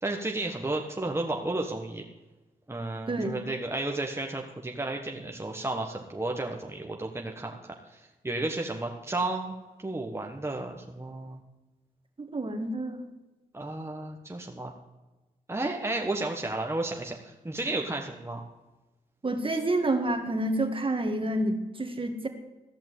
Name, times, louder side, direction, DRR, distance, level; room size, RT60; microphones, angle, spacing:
voice 1, 0.0-2.0 2.7-11.4 13.5-14.7 15.5-18.4, right 2 dB, 15° right, 1 dB, 1.4 m, -33 dB
voice 2, 3.1-3.4 12.2-13.0 19.2-22.3, right 1 dB, 35° right, 6 dB, 1.9 m, -28 dB
14.0 x 5.9 x 9.2 m, 1.1 s
supercardioid pair, 50°, 16 cm